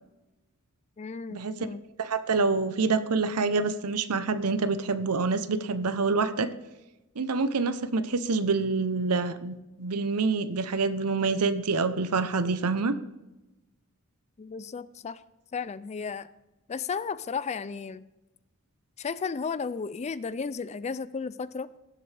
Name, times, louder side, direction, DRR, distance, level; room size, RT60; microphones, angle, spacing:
voice 1, 1.0-1.8 14.4-15.2 15.5-16.3 16.7-18.0 19.0-21.7, left 5 dB, 30° left, 16 dB, 0.4 m, -34 dB
voice 2, 2.0-6.5 7.2-12.9, right 4 dB, 90° right, 12 dB, 0.8 m, -26 dB
17.5 x 7.6 x 3.4 m, 1.0 s
head